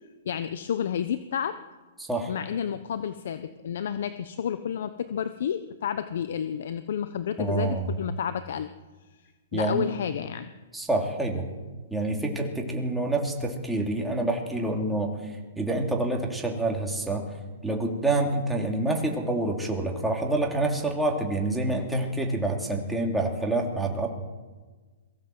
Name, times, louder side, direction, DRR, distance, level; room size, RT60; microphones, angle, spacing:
voice 1, 0.2-1.6 2.3-8.7 9.5-10.5, left 8 dB, 65° left, 11 dB, 1.0 m, -30 dB
voice 2, 2.0-2.3 7.4-7.9 9.5-9.9 10.7-11.5 11.9-15.1 15.6-17.3 17.6-24.1, right 2 dB, 5° right, 0 dB, 3.0 m, -27 dB
23.0 x 15.5 x 7.9 m, 1.4 s
hypercardioid pair, 150°, 0 cm